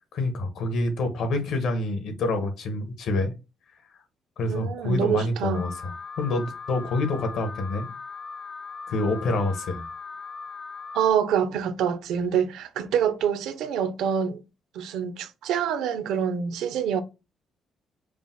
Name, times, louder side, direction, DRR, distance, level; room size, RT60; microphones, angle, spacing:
voice 1, 0.1-3.3 4.4-5.7 6.2-7.9 8.9-9.9, left 2 dB, 70° left, 1.2 m, -27 dB
voice 2, 4.5-5.7 10.9-14.4 14.7-17.0, right 8 dB, 90° right, 0.6 m, -26 dB
Alarm, 5.5-11.1, left 4 dB, 30° left, 0.3 m, -39 dB
4.9 x 2.1 x 3.7 m
cardioid pair, 130°, 0 cm